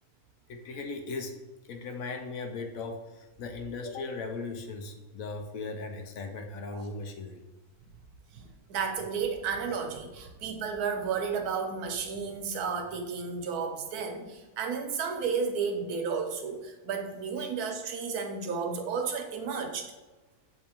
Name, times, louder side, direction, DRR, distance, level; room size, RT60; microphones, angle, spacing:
voice 1, 0.5-1.3 1.7-7.4 17.4-17.5, left 3 dB, 75° left, 5 dB, 1.0 m, -38 dB
voice 2, 8.3-19.9, right 5 dB, 90° right, 5 dB, 1.2 m, -32 dB
6.7 x 2.7 x 2.8 m, 1.1 s
omnidirectional pair, 1.6 m